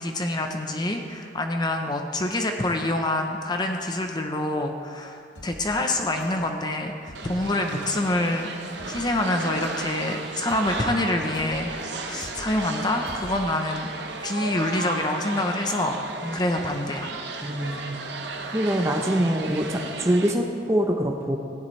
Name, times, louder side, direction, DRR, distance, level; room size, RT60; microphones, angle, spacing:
voice 1, 0.0-8.5 8.9-11.7 12.1-13.9 14.2-16.0 16.3-17.1, left 1 dB, 25° left, 4 dB, 0.6 m, -26 dB
sound 1, 5.3-5.8 6.2-6.6 7.1-7.5 7.9-8.2 8.8-9.2 9.6-10.0 10.5-10.9 11.3-11.8 12.2-12.6 13.1-13.5, left 1 dB, 70° left, 2.0 m, -44 dB
sound 2, 7.1-20.3, right 3 dB, 70° right, 0.9 m, -35 dB
voice 2, 17.4-18.0 18.5-21.4, equal, 15° right, 1 dB, 0.6 m, -24 dB
15.5 x 10.5 x 3.2 m, 2.3 s
head